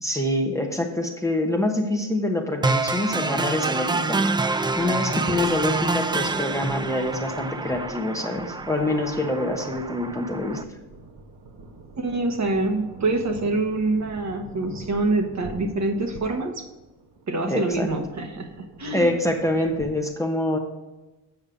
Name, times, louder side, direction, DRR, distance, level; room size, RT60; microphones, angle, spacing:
voice 1, 0.0-4.2 4.8-10.8 17.5-17.9 18.9-20.6, left 1 dB, 10° left, 2 dB, 1.0 m, -26 dB
sound 1, 2.6-10.6, right 3 dB, 10° right, 0.3 m, -27 dB
sound 2, 4.7-19.9, right 2 dB, 70° right, 1.4 m, -44 dB
voice 2, 12.0-16.7 17.3-19.1, right 2 dB, 45° right, 4 dB, 1.3 m, -26 dB
8.3 x 5.3 x 5.1 m, 1.1 s
cardioid pair, 95°, 39 cm